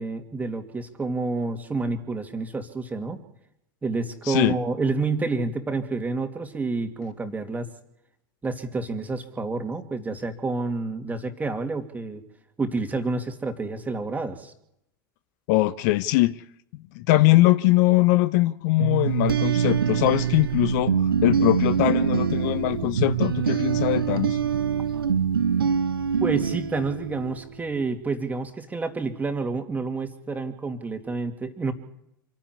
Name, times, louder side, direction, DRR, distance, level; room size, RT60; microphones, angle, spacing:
voice 1, 0.0-3.2 3.8-7.7 8.4-12.2 12.6-14.5 26.2-31.7, right 3 dB, 15° right, 2.7 m, -29 dB
voice 2, 4.2-4.6 15.5-16.4 16.9-20.9 21.2-24.4, left 18 dB, 50° left, 0.7 m, -21 dB
sound 1, 18.8-27.5, right 7 dB, 75° right, 1.0 m, -24 dB
26.5 x 10.5 x 9.8 m
figure-of-eight pair, 85°, 12 cm